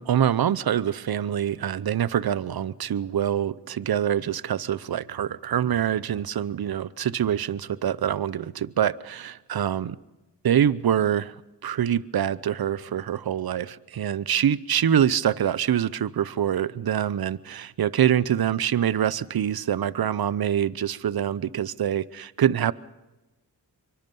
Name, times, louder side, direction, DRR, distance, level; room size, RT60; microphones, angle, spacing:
voice 1, 0.0-10.0 10.4-11.4 11.6-22.7, right 9 dB, 60° right, 19 dB, 0.8 m, -25 dB
24.0 x 24.0 x 5.4 m, 1.0 s
cardioid pair, 45°, 41 cm